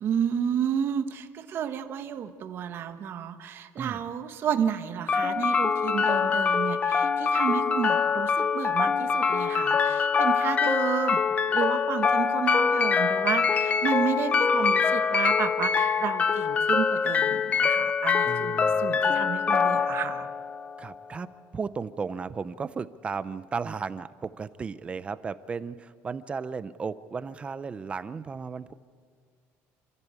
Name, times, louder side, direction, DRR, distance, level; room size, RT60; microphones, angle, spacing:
voice 1, 0.0-20.3, right 8 dB, 40° right, 8 dB, 1.3 m, -31 dB
sound 1, 5.1-21.1, left 6 dB, 25° left, 0.5 m, -24 dB
voice 2, 18.2-18.9 20.8-28.7, right 5 dB, 20° right, 14 dB, 0.6 m, -35 dB
28.5 x 14.5 x 8.3 m, 2.1 s
cardioid pair, 165°, 6 cm